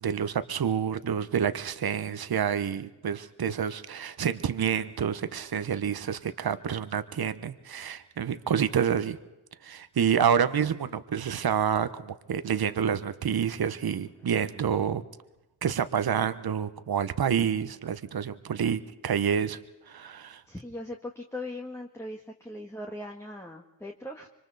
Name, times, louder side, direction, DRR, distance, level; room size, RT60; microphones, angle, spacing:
voice 1, 0.0-9.2 9.6-15.0 15.6-19.6 19.9-20.4, right 8 dB, 55° right, 12 dB, 1.2 m, -28 dB
voice 2, 2.1-2.4 20.5-24.3, left 1 dB, 5° left, 1 dB, 1.6 m, -40 dB
26.0 x 24.0 x 4.1 m, 1.0 s
cardioid pair, 65°, 44 cm